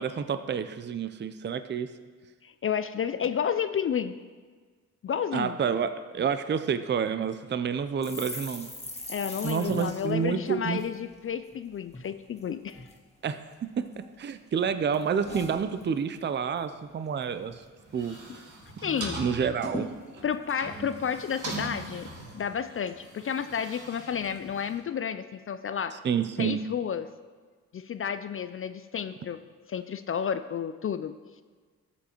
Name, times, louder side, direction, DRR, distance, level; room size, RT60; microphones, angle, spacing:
voice 1, 0.0-1.9 5.3-8.7 9.4-10.8 13.2-13.4 13.8-13.9 14.2-17.6 17.9-18.2 19.2-20.0 26.0-26.6, right 7 dB, 30° right, 11 dB, 0.5 m, -29 dB
voice 2, 2.4-4.1 5.0-5.6 9.1-12.9 18.8-19.2 20.2-26.0 26.4-27.1 27.7-29.4 29.7-31.1, left 8 dB, 40° left, 11 dB, 0.4 m, -31 dB
sound 1, 8.0-11.6 11.9-12.1 12.4-13.0 13.5-14.3 14.6-16.3 16.6-16.8 17.1-17.6 18.0-18.1 18.4-19.1 19.3-19.4 19.6-21.5 22.0-22.3, left 1 dB, 15° left, 1.7 m, -42 dB
sound 2, 17.8-24.8, right 2 dB, 55° right, 2.0 m, -41 dB
13.0 x 7.0 x 3.0 m, 1.5 s
hypercardioid pair, 40°, 36 cm